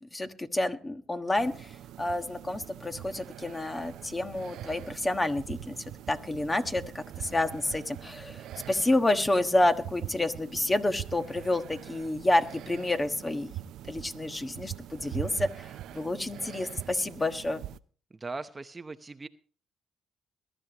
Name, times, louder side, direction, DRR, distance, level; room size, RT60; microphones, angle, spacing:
voice 1, 0.0-5.8 6.1-13.5 13.9-17.6, left 2 dB, 20° left, 8 dB, 1.3 m, -29 dB
sound 1, 1.4-17.8, right 12 dB, 80° right, 0.6 m, -43 dB
voice 2, 18.2-19.3, right 3 dB, 25° right, 9 dB, 0.8 m, -39 dB
22.0 x 12.5 x 3.0 m, 0.41 s
cardioid pair, 90°, 0 cm